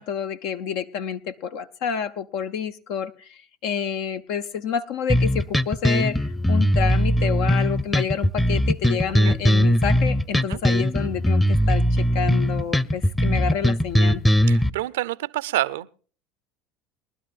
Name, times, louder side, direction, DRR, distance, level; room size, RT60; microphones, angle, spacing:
voice 1, 0.0-14.2, left 7 dB, 70° left, 0.7 m, -29 dB
sound 1, 5.1-14.7, equal, 10° left, 0.7 m, -20 dB
voice 2, 14.5-15.9, right 15 dB, 85° right, 0.6 m, -28 dB
23.0 x 12.0 x 2.5 m
hypercardioid pair, 85°, 0 cm